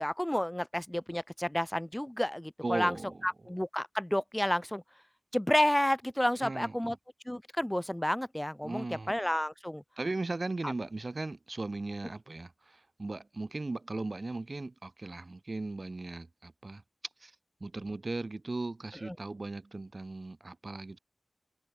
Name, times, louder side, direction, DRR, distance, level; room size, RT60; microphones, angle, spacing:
voice 1, 0.0-2.9 3.2-4.8 5.3-7.0 7.3-9.8 10.6-10.7 19.0-19.1, left 1 dB, 10° left, 1.0 m, -30 dB
voice 2, 2.6-3.2 6.4-6.9 8.6-9.1 10.0-16.8 17.2-17.3 17.6-21.0, right 2 dB, 50° right, 1.3 m, -37 dB
cardioid pair, 45°, 0 cm